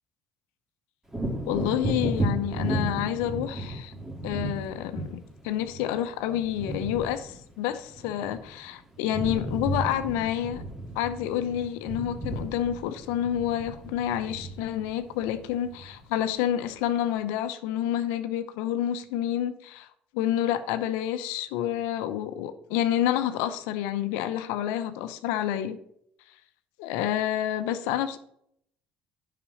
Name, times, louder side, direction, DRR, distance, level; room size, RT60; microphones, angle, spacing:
Wind / Thunder, 1.1-8.7 8.9-16.2 16.6-16.8, right 1 dB, 10° right, 2.1 m, -34 dB
voice 1, 1.5-3.9 4.2-10.6 10.9-19.9 20.1-25.8 26.8-28.2, left 11 dB, 85° left, 0.7 m, -29 dB
7.0 x 5.9 x 6.9 m
supercardioid pair, 65°, 4 cm